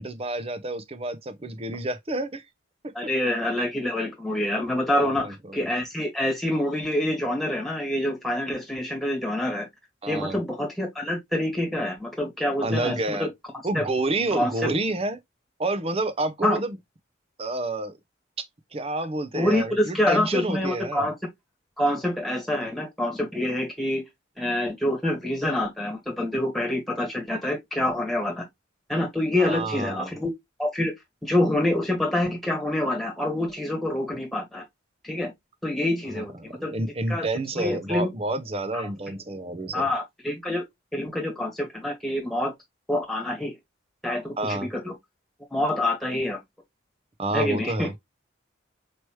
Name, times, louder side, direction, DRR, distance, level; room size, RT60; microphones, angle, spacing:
voice 1, 0.0-2.4 4.9-5.6 10.0-10.4 12.6-13.3 13.6-15.2 15.6-16.8 17.4-17.9 18.7-21.0 29.4-30.1 36.2-39.9 44.4-44.7 47.2-47.9, right 2 dB, 30° right, 0.6 m, -29 dB
voice 2, 2.9-5.3 5.5-9.7 10.1-13.3 13.7-13.8 14.3-14.7 16.4-16.6 19.3-21.1 21.8-24.0 24.4-28.5 28.9-30.3 30.6-30.9 31.2-34.6 35.0-35.3 35.6-36.7 37.1-37.3 37.6-38.1 38.7-38.9 39.7-40.6 40.9-42.5 42.9-43.5 44.0-44.9 45.5-46.4 47.3-47.9, left 1 dB, ahead, 1.7 m, -26 dB
4.7 x 2.9 x 3.0 m
head